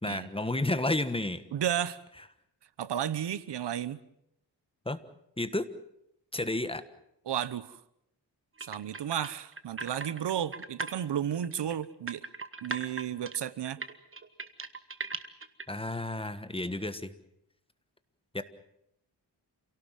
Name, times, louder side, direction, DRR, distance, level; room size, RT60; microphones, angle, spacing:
voice 1, 0.0-1.4 4.8-5.0 5.4-5.7 6.3-6.8 15.7-17.1 18.3-18.4, left 2 dB, 15° left, 11 dB, 1.4 m, -31 dB
voice 2, 1.5-2.0 2.8-4.0 7.3-7.8 8.6-12.2 12.6-13.8, right 10 dB, 85° right, 17 dB, 1.0 m, -33 dB
sound 1, 8.6-10.9 11.3-15.6, right 4 dB, 30° right, 1.4 m, -38 dB
28.0 x 17.5 x 7.6 m, 0.76 s
wide cardioid pair, 100°, 40 cm